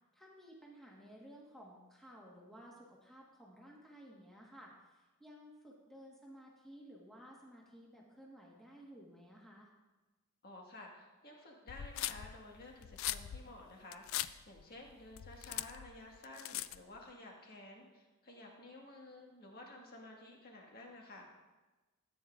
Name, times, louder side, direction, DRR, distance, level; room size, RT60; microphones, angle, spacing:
voice 1, 0.1-9.7, equal, ahead, -4 dB, 1.4 m, -56 dB
voice 2, 10.4-21.3, left 2 dB, 45° left, -1 dB, 1.7 m, -53 dB
sound 1, 11.7-17.0, left 13 dB, 65° left, 0.3 m, -41 dB
13.5 x 9.0 x 2.5 m, 1.2 s
head